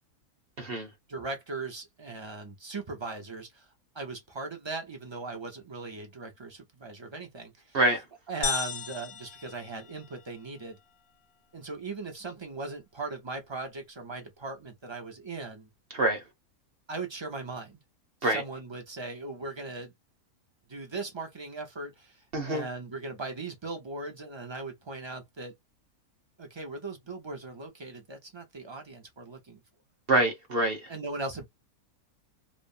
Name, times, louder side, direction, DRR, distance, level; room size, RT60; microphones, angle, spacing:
voice 1, 0.6-0.9 7.7-8.0 15.9-16.2 18.2-18.4 22.3-22.7 30.1-30.9, right 1 dB, 45° right, 1.0 m, -26 dB
voice 2, 1.1-3.7 3.9-7.8 8.3-10.8 11.5-15.7 16.9-17.8 18.2-19.9 20.7-25.5 26.4-29.6 30.9-31.5, right 3 dB, 30° right, 0.5 m, -39 dB
sound 1, 8.4-10.4, left 5 dB, 70° left, 1.2 m, -35 dB
3.0 x 2.0 x 2.5 m
omnidirectional pair, 1.6 m